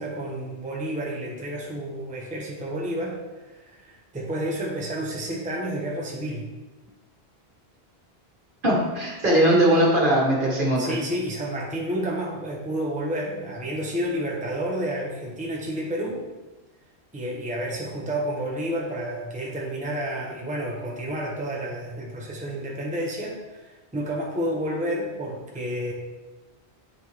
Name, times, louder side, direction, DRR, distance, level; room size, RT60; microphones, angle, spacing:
voice 1, 0.0-3.2 3.5-6.5 10.8-16.2 17.1-25.9, right 1 dB, 10° right, -3 dB, 0.9 m, -30 dB
voice 2, 8.6-11.0, right 1 dB, 50° right, -3 dB, 1.7 m, -20 dB
10.0 x 4.1 x 3.4 m, 1.2 s
omnidirectional pair, 1.1 m